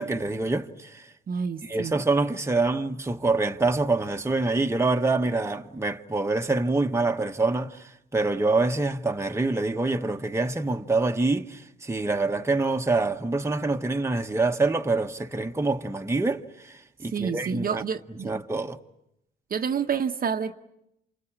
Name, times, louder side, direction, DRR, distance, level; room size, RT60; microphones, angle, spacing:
voice 1, 0.0-1.1 1.6-17.8 18.1-18.8, right 3 dB, 15° right, 1.2 m, -26 dB
voice 2, 1.3-1.9 17.1-18.3 19.5-20.5, right 6 dB, 45° right, 1.0 m, -28 dB
29.5 x 27.5 x 7.4 m
cardioid pair, 90°, 20 cm